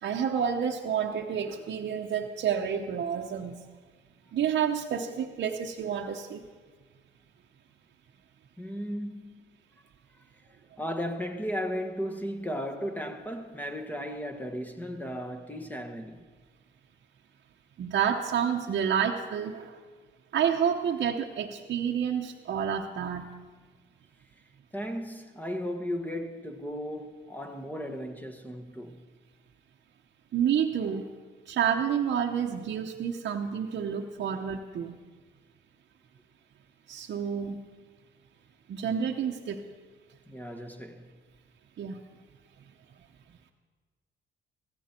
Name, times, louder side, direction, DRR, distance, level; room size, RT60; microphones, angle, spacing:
voice 1, 0.0-3.6 4.3-6.4 17.8-19.7 20.3-23.3 30.3-31.0 31.5-35.0 36.9-37.6 38.7-39.6 41.8-42.0, right 8 dB, 60° right, 1.0 m, -29 dB
voice 2, 8.6-9.4 10.8-16.2 24.7-29.0 40.3-41.0, equal, 10° left, 1.5 m, -35 dB
15.5 x 15.0 x 4.5 m
cardioid pair, 90°, 20 cm